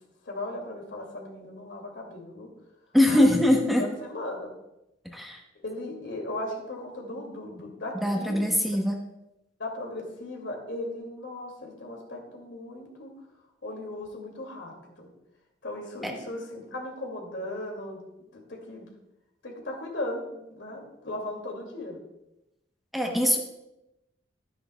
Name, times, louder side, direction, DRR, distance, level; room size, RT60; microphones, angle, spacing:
voice 1, 0.2-2.5 3.1-3.3 3.6-4.5 5.6-8.9 9.6-13.1 13.6-15.1 15.6-18.0 18.3-18.9 19.4-22.0, left 1 dB, 85° left, 0 dB, 2.3 m, -37 dB
voice 2, 2.9-3.8 5.0-5.4 8.0-9.0 16.0-16.1 22.9-23.4, left 1 dB, ahead, 1 dB, 0.9 m, -22 dB
13.0 x 9.8 x 2.3 m, 0.91 s
head